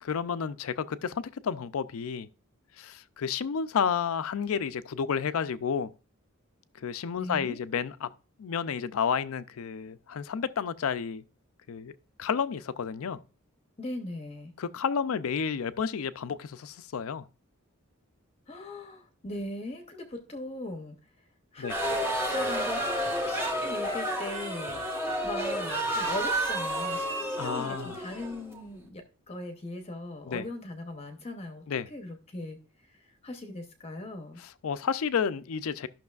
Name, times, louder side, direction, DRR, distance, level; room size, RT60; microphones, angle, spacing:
voice 1, 0.0-2.3 2.8-5.9 6.8-8.1 8.4-11.2 11.7-11.9 12.2-13.2 14.6-17.3 21.6-21.8 27.4-28.0 30.2-30.4 31.7-31.9 34.4-35.9, left 6 dB, 75° left, 0.4 m, -31 dB
voice 2, 7.2-7.6 13.8-14.5 18.5-21.0 21.5-24.8 25.2-31.6 31.9-32.6 32.9-33.0 33.2-34.4, left 2 dB, 25° left, 0.7 m, -39 dB
sound 1, 21.7-28.8, right 1 dB, 10° right, 1.1 m, -31 dB
12.0 x 5.9 x 2.3 m
head